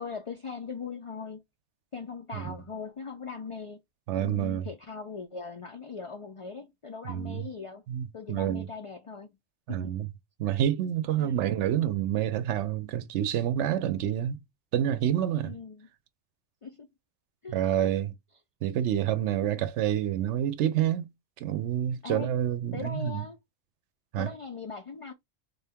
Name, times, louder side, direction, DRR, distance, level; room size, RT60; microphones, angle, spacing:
voice 1, 0.0-1.4 1.9-3.8 4.2-7.8 8.1-9.3 9.7-9.9 11.2-11.4 15.4-15.9 16.6-16.9 17.4-17.9 19.5-19.6 22.0-22.3 22.7-23.4 24.2-25.1, left 5 dB, 50° left, 0.4 m, -40 dB
voice 2, 4.1-4.7 7.1-7.4 7.9-8.7 9.7-10.1 10.4-14.4 14.7-15.6 17.5-18.1 18.6-21.1 21.4-23.2 24.1-24.3, right 11 dB, 80° right, 0.9 m, -28 dB
3.9 x 2.8 x 3.4 m
omnidirectional pair, 1.2 m